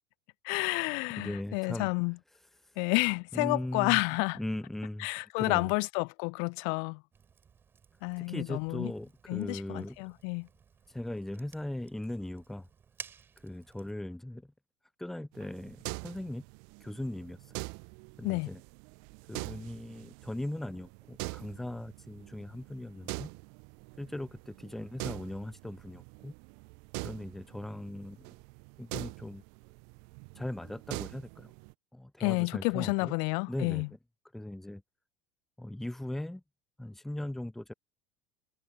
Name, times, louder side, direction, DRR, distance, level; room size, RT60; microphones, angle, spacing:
voice 1, 0.4-2.2 2.8-4.4 5.0-7.0 8.0-8.9 9.3-10.5 18.2-18.5 32.2-33.9, left 40 dB or more, 55° left, 0.9 m, -30 dB
voice 2, 1.2-1.9 3.3-4.0 4.3-5.1 5.4-5.7 8.3-10.0 10.9-12.7 13.4-14.5 15.0-16.4 16.8-17.6 18.2-18.6 19.3-23.3 24.0-26.3 27.0-28.3 28.8-29.4 30.4-31.5 31.9-33.1 33.5-33.9 34.3-34.8 35.6-36.4 36.8-37.7, left 1 dB, 5° left, 0.8 m, -39 dB
Fire, 7.1-13.9, right 7 dB, 25° right, 5.0 m, -54 dB
sound 1, 15.3-31.7, right 39 dB, 55° right, 0.9 m, -44 dB
figure-of-eight pair, 70°, 8 cm